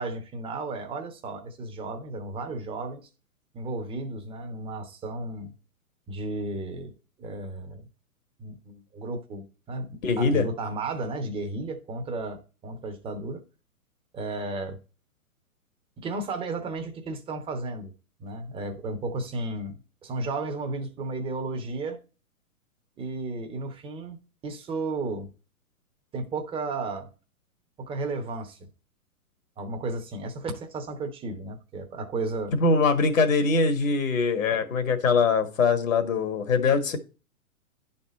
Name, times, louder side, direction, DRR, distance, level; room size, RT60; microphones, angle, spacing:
voice 1, 0.0-3.1 3.5-5.5 6.1-6.9 7.2-7.9 8.4-13.4 14.1-14.8 16.0-17.9 18.2-22.0 23.0-24.2 24.4-25.3 26.1-27.1 27.8-28.7 29.6-32.5, right 2 dB, 10° right, 1.0 m, -33 dB
voice 2, 10.0-10.4 32.5-37.0, left 4 dB, 65° left, 1.7 m, -22 dB
10.5 x 4.3 x 4.2 m
figure-of-eight pair, 115°, 43 cm